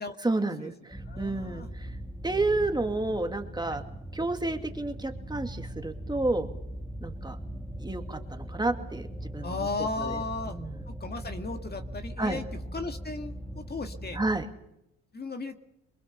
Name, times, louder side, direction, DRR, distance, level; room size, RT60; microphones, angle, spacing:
voice 1, 0.2-1.9 2.2-3.8 4.1-6.5 7.0-7.4 7.8-9.1 9.3-9.5 10.0-10.2 10.5-10.7 12.2-12.4 14.1-14.5, right 2 dB, 15° right, 5 dB, 2.4 m, -30 dB
sound 1, 0.9-14.4, right 1 dB, 5° left, 2.3 m, -40 dB
voice 2, 1.1-1.7 3.7-3.8 9.4-10.6 10.9-14.2 15.1-15.6, left 3 dB, 30° left, 5 dB, 2.0 m, -36 dB
24.5 x 22.0 x 6.8 m, 0.82 s
cardioid pair, 90°, 30 cm